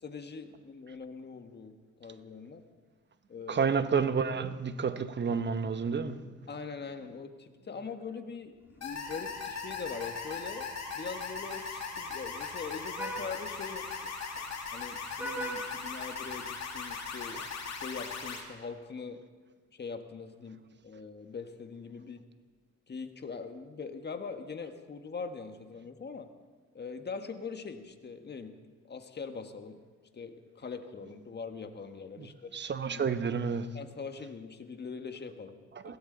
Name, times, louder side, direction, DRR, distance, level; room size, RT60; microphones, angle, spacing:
voice 1, 0.0-1.7 2.0-2.6 3.3-3.7 6.5-10.7 10.9-14.1 14.7-17.4 17.7-19.2 19.7-22.2 22.9-26.3 26.7-28.6 28.8-29.8 30.1-32.6 32.9-33.0 33.7-35.6 35.8-36.0, left 5 dB, 35° left, 1.5 m, -42 dB
voice 2, 3.5-6.3 17.3-17.4 32.2-32.3 32.5-33.8 35.7-36.0, right 6 dB, 35° right, 1.0 m, -30 dB
Vehicle horn car horn honking, 8.7-16.8, right 1 dB, 5° right, 2.5 m, -46 dB
sound 1, 8.8-18.4, left 5 dB, 60° left, 2.7 m, -39 dB
21.5 x 16.5 x 4.0 m
cardioid pair, 90°, 30 cm